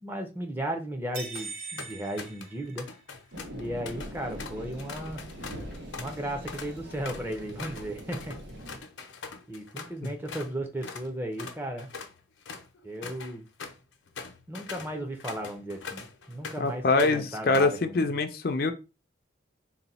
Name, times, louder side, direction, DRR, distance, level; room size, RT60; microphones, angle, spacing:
voice 1, 0.0-2.9 3.5-5.2 6.0-8.4 9.5-11.9 12.8-13.5 14.5-18.1, right 1 dB, 10° right, 0.6 m, -35 dB
sound 1, 1.1-3.3, right 4 dB, 45° right, 0.8 m, -41 dB
sound 2, 1.4-1.5 1.8-2.5 2.8-10.5 10.8-11.1 11.4-16.7 17.0-17.8, left 5 dB, 85° left, 0.7 m, -42 dB
sound 3, 3.3-8.8, equal, 75° right, 1.1 m, -42 dB
voice 2, 16.6-18.7, left 3 dB, 50° left, 0.4 m, -24 dB
3.9 x 2.2 x 4.1 m
head